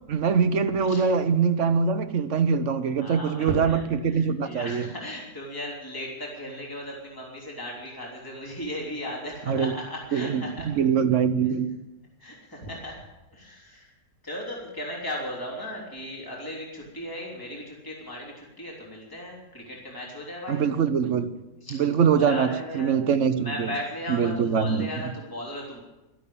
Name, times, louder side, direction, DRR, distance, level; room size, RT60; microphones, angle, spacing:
voice 1, 0.1-4.9 9.5-9.7 10.1-11.7 20.5-21.3 21.8-23.7 24.1-24.9, right 6 dB, 55° right, 1.0 m, -23 dB
voice 2, 2.9-3.8 4.1-10.7 11.5-11.6 12.2-13.0 13.3-13.9 14.2-20.6 21.6-21.8 22.2-22.9 23.4-25.8, left 1 dB, 10° left, 3.4 m, -36 dB
13.0 x 12.0 x 8.6 m
omnidirectional pair, 1.8 m